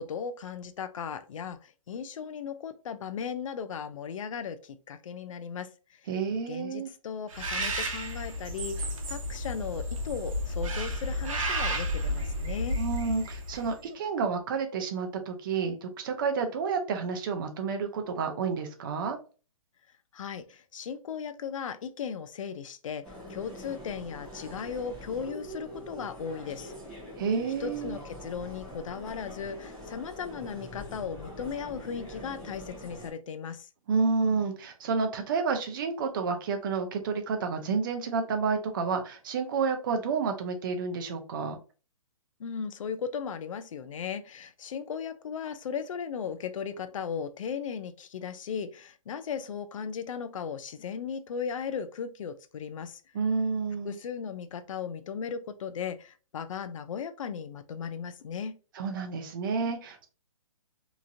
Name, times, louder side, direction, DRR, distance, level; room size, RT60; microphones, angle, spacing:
voice 1, 0.0-6.0 6.5-12.8 20.1-23.0 23.3-26.7 27.6-33.7 42.4-53.0 53.8-58.6, left 6 dB, 65° left, 0.4 m, -37 dB
voice 2, 6.1-6.9 12.8-19.2 27.2-28.0 33.9-41.6 53.1-54.0 58.7-60.1, right 5 dB, 35° right, 0.6 m, -30 dB
Bird, 7.3-13.7, equal, 65° right, 0.9 m, -32 dB
sound 1, 23.0-33.1, equal, 5° left, 0.8 m, -44 dB
3.0 x 2.5 x 2.5 m
hypercardioid pair, 155°, 18 cm